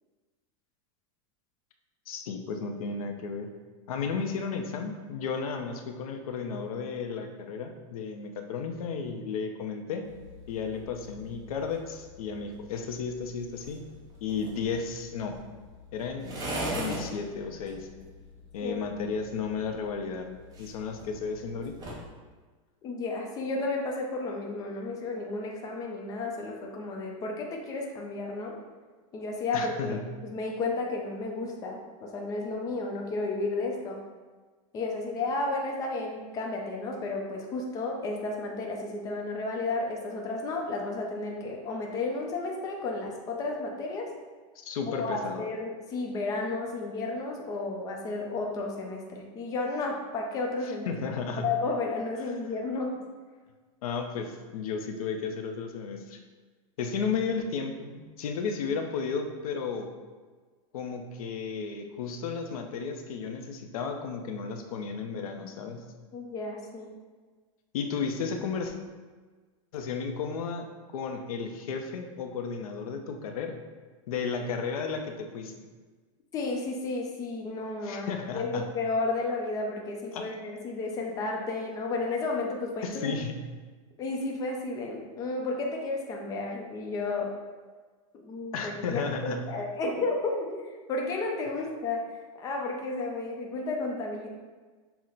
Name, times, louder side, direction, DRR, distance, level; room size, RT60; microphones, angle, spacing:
voice 1, 2.1-3.5 3.9-10.0 10.5-13.8 14.2-15.4 15.9-16.4 16.7-17.9 18.5-21.8 29.5-30.0 44.6-45.5 50.6-51.4 53.8-56.2 56.8-59.9 60.7-65.8 67.7-68.7 69.7-70.7 70.9-73.6 74.1-75.6 77.8-78.7 80.1-80.3 82.8-83.4 88.5-89.5, left 5 dB, 85° left, 4 dB, 0.6 m, -33 dB
sound 1, 10.0-22.1, equal, 20° right, 0.8 m, -42 dB
voice 2, 22.8-28.5 29.1-30.0 30.2-34.0 34.7-44.1 44.9-50.9 51.4-53.0 66.1-66.9 76.3-83.2 84.0-87.3 88.1-92.0 92.4-94.3, left 3 dB, 20° left, 0 dB, 0.5 m, -32 dB
5.8 x 2.1 x 3.9 m, 1.4 s
supercardioid pair, 165°, 18 cm